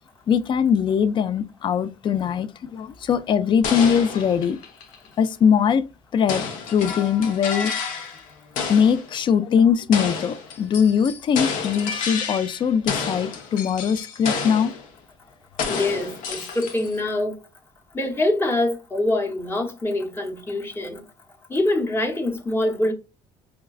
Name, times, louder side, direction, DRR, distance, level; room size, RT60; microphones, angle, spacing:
voice 1, 0.3-4.6 5.2-5.8 6.1-6.4 6.7-7.7 8.7-14.7, left 7 dB, 35° left, 0.3 m, -21 dB
sound 1, 3.6-5.1 6.3-8.3 8.6-9.1 9.9-12.6 12.9-14.9 15.6-17.0, left 5 dB, 75° left, 0.7 m, -30 dB
voice 2, 15.7-17.4 17.9-21.0 21.5-22.9, left 1 dB, 15° left, 0.8 m, -24 dB
4.7 x 2.2 x 2.3 m
cardioid pair, 105°, 13 cm